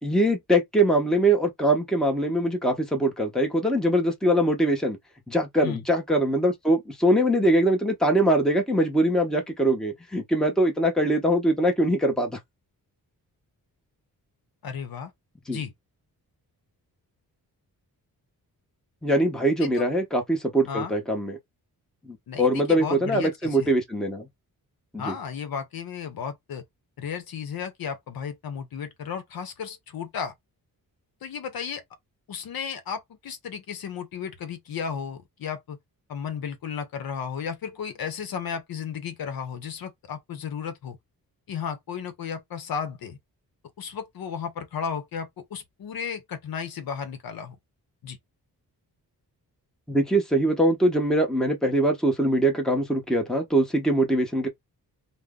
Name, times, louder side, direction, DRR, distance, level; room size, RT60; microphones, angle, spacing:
voice 1, 0.0-5.0 5.3-12.4 15.5-15.6 19.0-21.4 22.1-24.3 24.9-25.1 49.9-54.5, right 1 dB, ahead, 0.8 m, -22 dB
voice 2, 14.6-15.1 15.5-15.7 19.6-19.9 20.7-20.9 22.3-23.7 25.0-26.6 27.0-30.3 31.2-31.8 32.3-35.8 36.1-41.0 41.5-43.2 43.8-47.6 48.0-48.2, left 7 dB, 70° left, 0.8 m, -34 dB
2.6 x 2.1 x 3.6 m
cardioid pair, 105°, 37 cm